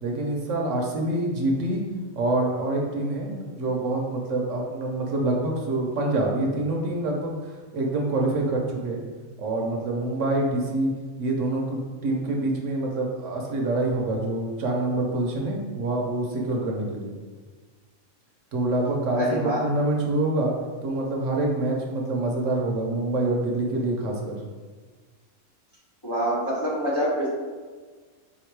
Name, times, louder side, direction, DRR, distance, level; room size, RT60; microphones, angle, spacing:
voice 1, 0.0-1.8 2.1-9.0 9.4-10.9 11.2-17.1 18.5-20.5 20.8-24.4, right 2 dB, 65° right, 0 dB, 1.0 m, -26 dB
voice 2, 19.1-19.6 26.0-27.3, equal, 25° left, -6 dB, 0.7 m, -25 dB
3.8 x 2.9 x 4.5 m, 1.5 s
omnidirectional pair, 1.4 m